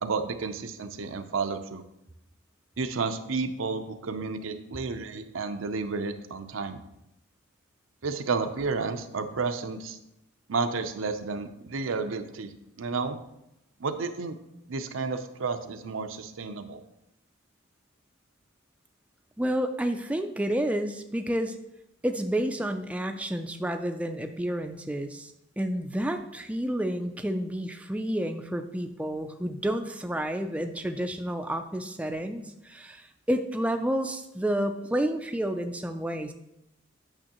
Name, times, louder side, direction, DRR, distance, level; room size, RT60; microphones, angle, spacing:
voice 1, 0.0-1.8 2.8-6.8 8.0-10.0 10.5-12.5 12.8-13.2 13.8-14.4 14.7-16.8, right 4 dB, 85° right, 8 dB, 0.6 m, -31 dB
voice 2, 19.4-21.6 22.0-25.3 25.6-36.3, right 1 dB, 5° right, 6 dB, 0.3 m, -30 dB
8.9 x 6.2 x 2.9 m, 0.86 s
head